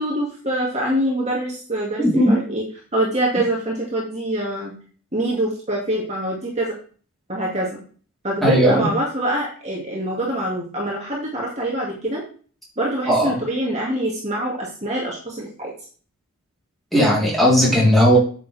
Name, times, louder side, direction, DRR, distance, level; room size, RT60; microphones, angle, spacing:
voice 1, 0.0-2.7 2.9-4.7 5.1-6.7 7.3-7.8 8.2-12.2 12.8-15.7, right 1 dB, 30° right, -3 dB, 2.2 m, -24 dB
voice 2, 2.0-2.4 8.4-8.9 13.1-13.4 16.9-18.2, equal, ahead, -5 dB, 3.7 m, -16 dB
9.5 x 6.6 x 3.5 m, 0.41 s
head